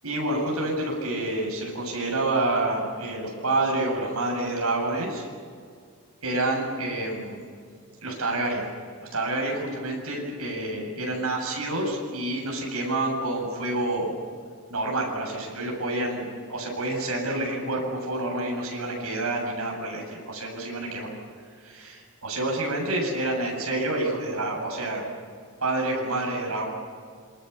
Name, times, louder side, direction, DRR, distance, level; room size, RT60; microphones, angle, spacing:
voice 1, 0.0-5.3 6.2-7.5 8.0-8.7 9.0-14.1 14.7-21.1 21.6-25.1 25.6-26.6, right 2 dB, 80° right, -1 dB, 8.0 m, -28 dB
27.5 x 25.5 x 7.0 m, 2.1 s
head